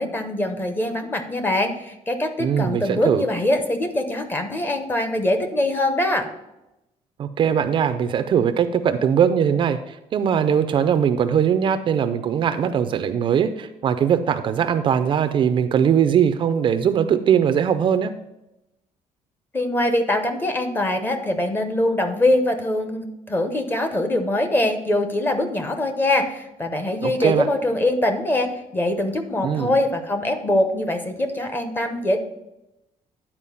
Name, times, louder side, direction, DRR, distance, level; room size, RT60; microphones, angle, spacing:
voice 1, 0.0-6.3 19.5-32.2, left 1 dB, 15° left, 7 dB, 0.8 m, -23 dB
voice 2, 2.4-3.2 7.2-18.1 27.0-27.5 29.4-29.7, right 8 dB, 40° right, 9 dB, 0.4 m, -20 dB
10.0 x 4.4 x 5.6 m, 0.91 s
cardioid pair, 165°, 12 cm